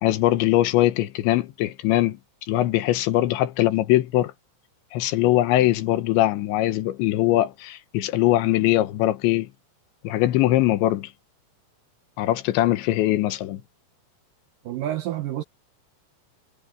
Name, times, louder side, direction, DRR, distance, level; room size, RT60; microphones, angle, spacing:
voice 1, 0.0-2.2 2.5-4.3 4.9-9.5 10.0-11.1 12.2-13.6, left 15 dB, 90° left, 3.5 m, -21 dB
voice 2, 14.6-15.4, right 12 dB, 75° right, 2.1 m, -28 dB
omnidirectional pair, 5.1 m